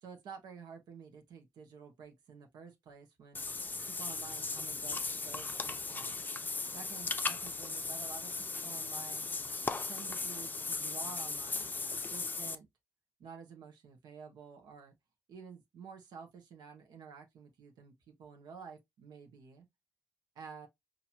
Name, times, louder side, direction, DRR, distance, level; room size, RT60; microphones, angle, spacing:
voice 1, 0.0-3.4 3.9-6.1 6.7-9.3 9.9-11.7 12.1-12.7 13.2-14.9 15.3-19.7 20.3-20.7, right 6 dB, 80° right, 1.1 m, -51 dB
Water / Bathtub (filling or washing), 3.4-12.6, left 3 dB, 25° left, 0.5 m, -37 dB
4.4 x 2.8 x 2.8 m
cardioid pair, 85°, 7 cm